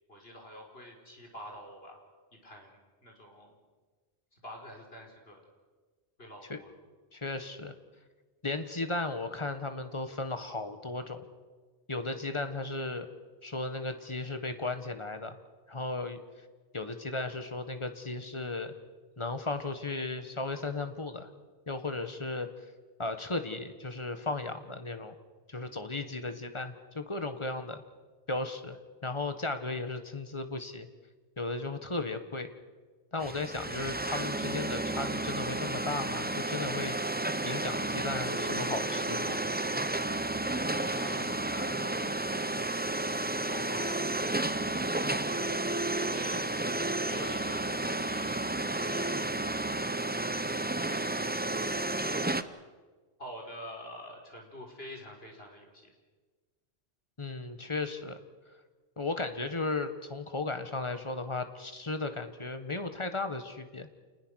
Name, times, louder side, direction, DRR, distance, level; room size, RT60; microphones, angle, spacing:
voice 1, 0.1-2.0 2.4-3.6 4.3-5.4 6.2-6.7 40.4-43.1 43.5-46.5 47.0-48.5 48.8-49.7 50.3-52.5 53.2-55.9, equal, 60° left, 1 dB, 4.8 m, -47 dB
voice 2, 7.1-7.7 8.4-11.2 11.9-13.1 13.4-15.4 15.7-16.2 16.7-18.7 19.2-21.3 21.7-22.5 23.0-25.1 25.5-27.8 28.3-30.9 31.4-32.5 33.1-37.0 37.4-39.4 57.2-58.2 59.0-63.9, left 3 dB, 25° left, 8 dB, 1.6 m, -35 dB
sound 1, 33.2-52.4, right 2 dB, 10° right, 0.6 m, -32 dB
27.5 x 20.0 x 6.5 m, 1.4 s
omnidirectional pair, 1.1 m